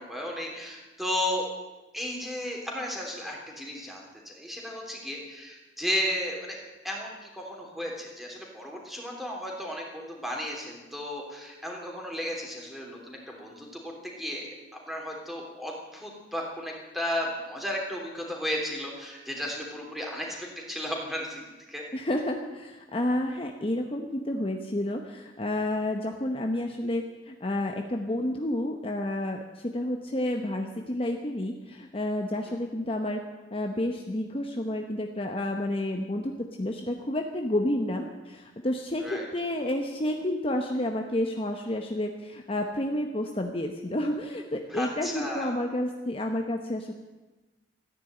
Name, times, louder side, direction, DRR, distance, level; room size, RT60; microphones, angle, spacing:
voice 1, 0.0-1.4 1.9-6.6 6.8-13.7 14.0-14.5 14.9-20.4 20.7-21.8 39.0-39.2 44.7-45.5, left 1 dB, ahead, -1 dB, 3.2 m, -34 dB
voice 2, 21.9-33.2 33.5-46.9, left 1 dB, 30° left, 3 dB, 0.9 m, -30 dB
14.0 x 10.5 x 8.9 m, 1.2 s
head